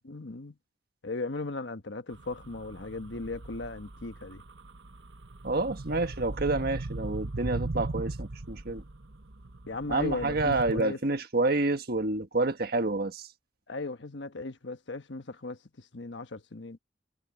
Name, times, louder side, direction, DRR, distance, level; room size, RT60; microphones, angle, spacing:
voice 1, 0.0-0.6 1.0-4.4 9.7-11.0 13.7-16.8, left 3 dB, 75° left, 1.3 m, -37 dB
sound 1, 2.1-10.8, right 2 dB, 80° right, 1.2 m, -38 dB
voice 2, 5.4-8.8 9.9-13.3, right 2 dB, 55° right, 1.6 m, -28 dB
head